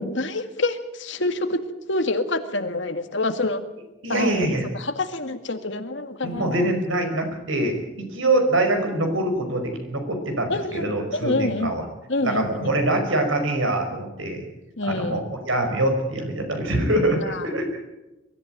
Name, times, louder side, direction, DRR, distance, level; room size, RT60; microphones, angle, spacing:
voice 1, 0.0-1.6 1.9-3.6 4.1-6.7 10.5-10.9 11.1-11.7 12.1-12.7 14.8-15.2 17.2-17.4, left 2 dB, 70° left, 8 dB, 1.9 m, -27 dB
voice 2, 4.0-4.7 6.2-11.8 12.2-14.4 14.8-17.7, right 1 dB, 90° right, 5 dB, 5.3 m, -24 dB
23.0 x 14.0 x 9.2 m, 0.99 s
head